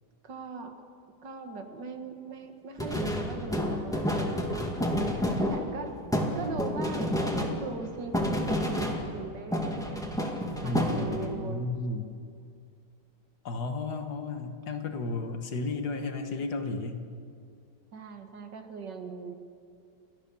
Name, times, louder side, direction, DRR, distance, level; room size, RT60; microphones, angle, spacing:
voice 1, 0.2-0.8 1.2-4.7 5.4-6.0 6.4-10.0 10.6-11.7 17.9-19.3, right 4 dB, 75° right, 6 dB, 2.2 m, -40 dB
sound 1, 2.8-9.3 9.5-11.4, equal, ahead, 2.0 m, -30 dB
voice 2, 10.6-12.1 13.5-17.0, left 3 dB, 65° left, 6 dB, 1.9 m, -33 dB
29.5 x 13.0 x 7.0 m, 2.3 s
omnidirectional pair, 1.9 m